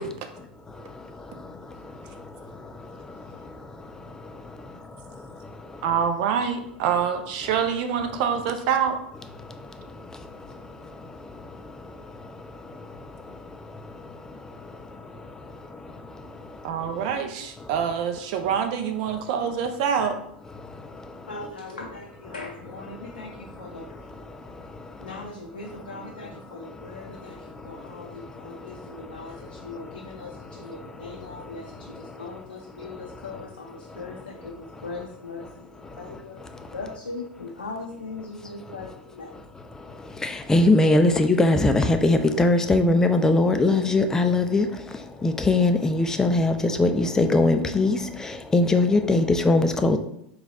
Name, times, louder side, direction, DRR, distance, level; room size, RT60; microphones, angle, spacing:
voice 1, 0.3-6.1 6.8-7.0 7.4-7.7 8.0-8.4 8.8-8.9 9.1-17.3 17.6-17.9 18.4-18.6 19.0-19.5 20.4-21.5 21.8-21.9 22.2-25.3 25.5-35.0 35.4-36.9 38.1-38.2 38.6-50.0, left 2 dB, 10° left, 0.4 m, -27 dB
voice 2, 5.8-9.0 16.6-20.1 40.6-40.7, right 7 dB, 55° right, 0.5 m, -26 dB
voice 3, 21.3-24.1 25.0-39.3, left 3 dB, 85° left, 0.5 m, -40 dB
4.0 x 2.3 x 4.0 m
figure-of-eight pair, 90°, 5 cm